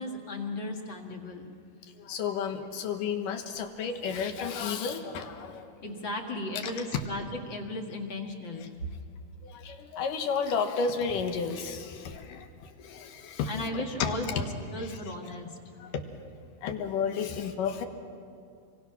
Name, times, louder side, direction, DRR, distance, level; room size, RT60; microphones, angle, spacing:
voice 1, 0.0-1.5 5.8-8.7 13.5-14.5 14.7-15.6, left 2 dB, 40° left, 2 dB, 2.2 m, -36 dB
voice 2, 1.8-5.7 6.6-7.0 9.4-14.3 14.8-15.1 15.8-16.0 16.6-17.9, left 6 dB, 80° left, 6 dB, 3.0 m, -32 dB
28.0 x 23.0 x 6.0 m, 2.4 s
omnidirectional pair, 3.8 m